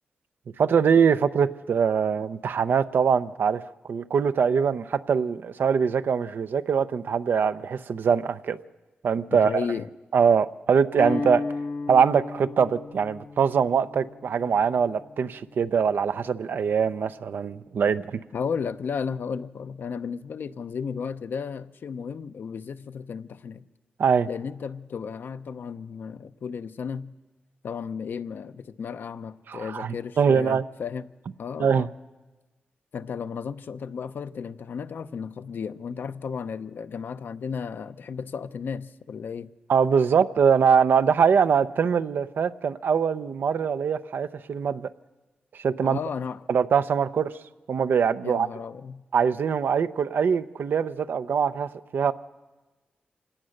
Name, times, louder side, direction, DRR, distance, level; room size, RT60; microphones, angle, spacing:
voice 1, 0.6-8.6 9.0-9.5 10.1-11.4 11.9-18.2 24.0-24.3 29.5-30.6 31.6-31.9 39.7-44.9 45.5-46.0 46.5-47.3 47.7-48.5 49.1-52.1, right 6 dB, 70° right, 0.6 m, -23 dB
voice 2, 9.3-9.9 18.3-23.6 24.3-27.1 27.6-31.1 31.4-31.9 32.9-39.5 45.8-46.4 48.2-49.0, left 6 dB, 70° left, 0.7 m, -34 dB
Guitar, 10.9-17.0, left 3 dB, 85° left, 1.2 m, -36 dB
26.0 x 17.5 x 6.5 m
cardioid pair, 75°, 4 cm